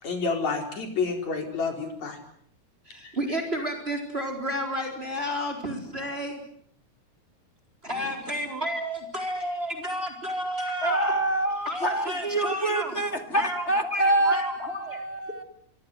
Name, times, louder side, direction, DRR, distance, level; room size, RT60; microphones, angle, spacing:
voice 1, 0.0-2.2 3.0-3.1, left 4 dB, 70° left, 4 dB, 5.9 m, -29 dB
voice 2, 2.9-6.4 7.8-11.2 11.6-13.0 13.3-15.0, equal, 20° right, 4 dB, 4.5 m, -31 dB
voice 3, 10.8-15.4, right 2 dB, 25° left, 7 dB, 2.1 m, -26 dB
26.0 x 25.0 x 8.0 m, 0.67 s
omnidirectional pair, 3.4 m